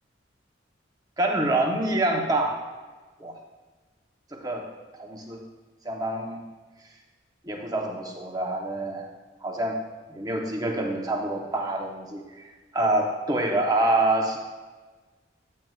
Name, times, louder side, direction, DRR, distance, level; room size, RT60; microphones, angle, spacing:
voice 1, 1.2-2.6 3.2-3.3 4.3-4.7 5.0-5.4 5.8-6.4 7.4-9.1 9.4-9.8 10.1-14.4, right 2 dB, 20° right, 1 dB, 0.8 m, -26 dB
9.4 x 8.8 x 2.4 m, 1.3 s
head